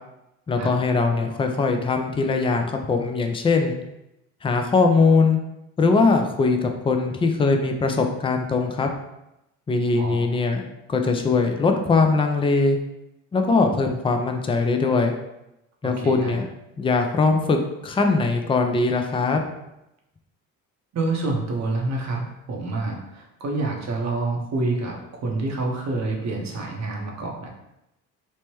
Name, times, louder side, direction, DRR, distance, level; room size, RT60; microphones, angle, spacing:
voice 1, 0.5-3.8 4.4-5.4 5.8-8.9 9.7-12.8 13.3-15.1 15.8-16.5 16.8-19.4, left 4 dB, 15° left, 4 dB, 0.4 m, -21 dB
voice 2, 10.0-10.4 15.8-16.4 20.9-22.2 22.5-27.5, right 2 dB, 45° right, 0 dB, 0.8 m, -27 dB
3.2 x 2.0 x 3.0 m, 0.89 s
supercardioid pair, 65°, 37 cm